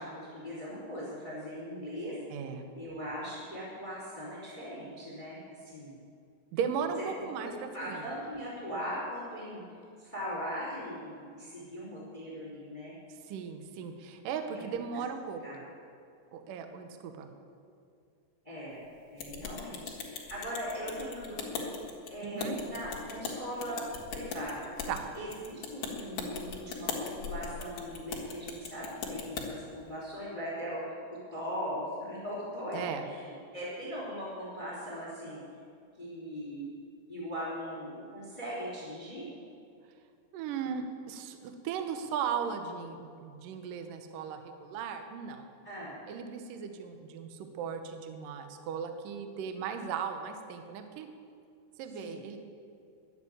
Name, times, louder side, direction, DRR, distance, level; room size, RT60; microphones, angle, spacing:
voice 1, 0.0-2.1 2.7-6.0 7.4-9.6 10.0-12.9 14.5-14.8 15.4-15.6 18.4-18.8 19.1-21.7 22.1-23.8 24.1-24.7 25.1-30.8 31.1-35.4 36.0-36.7 37.1-39.3 45.6-46.0 52.0-52.2, equal, 10° left, -6 dB, 3.0 m, -39 dB
voice 2, 2.3-2.6 6.5-8.1 13.3-15.4 16.3-17.3 22.2-22.6 24.9-25.1 32.7-33.1 40.3-45.5 46.1-51.1 51.8-52.4, right 7 dB, 90° right, 7 dB, 1.9 m, -37 dB
sound 1, 19.2-29.5, left 5 dB, 75° left, 1.3 m, -39 dB
11.5 x 9.2 x 8.8 m, 2.4 s
omnidirectional pair, 5.4 m